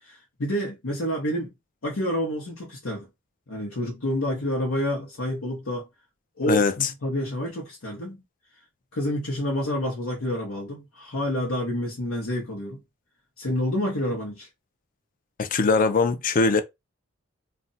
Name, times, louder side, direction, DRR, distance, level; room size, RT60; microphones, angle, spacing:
voice 1, 0.0-1.5 1.8-3.1 3.5-5.9 6.4-8.2 8.9-12.8 13.4-14.5, equal, 75° left, 0.9 m, -28 dB
voice 2, 6.4-6.9 15.4-16.6, left 4 dB, 40° left, 0.4 m, -21 dB
2.5 x 2.1 x 3.9 m
head